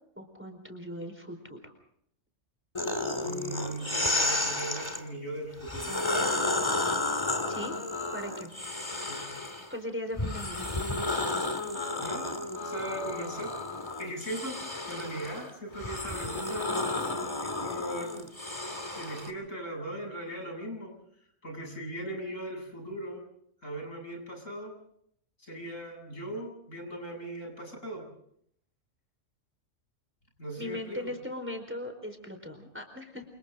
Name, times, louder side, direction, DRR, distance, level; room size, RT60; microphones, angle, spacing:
voice 1, 0.2-1.7 7.5-7.8 8.1-8.5 9.7-10.6 30.6-33.2, left 1 dB, 10° right, 5 dB, 4.4 m, -39 dB
sound 1, 2.7-5.0 5.6-9.7 10.2-19.3, left 2 dB, 20° left, 2.6 m, -32 dB
voice 2, 3.2-5.9 8.8-9.3 12.0-12.4 12.6-13.5 14.0-14.6 14.9-16.8 17.4-18.2 18.9-20.9 21.4-23.2 23.6-24.7 25.4-28.0 30.4-31.1, right 1 dB, 75° left, 2 dB, 8.3 m, -39 dB
28.5 x 28.0 x 3.8 m, 0.68 s
omnidirectional pair, 1.3 m